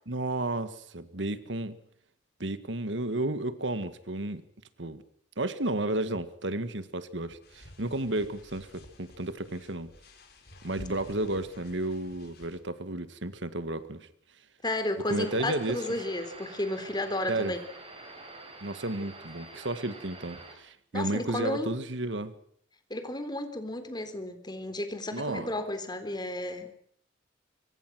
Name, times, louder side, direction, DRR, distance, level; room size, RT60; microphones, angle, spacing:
voice 1, 0.1-1.8 2.4-4.4 4.8-5.0 5.4-9.9 10.6-14.1 15.1-15.8 17.3-17.5 18.6-22.3 25.1-25.5, right 2 dB, 75° right, 12 dB, 1.8 m, -32 dB
sound 1, 7.4-12.6, left 1 dB, 55° left, 6.4 m, -51 dB
voice 2, 14.6-17.6 20.9-21.7 22.9-26.8, left 1 dB, 25° left, 9 dB, 3.7 m, -33 dB
sound 2, 15.0-20.5, right 2 dB, 30° right, 6.7 m, -47 dB
25.0 x 24.5 x 6.3 m, 0.65 s
head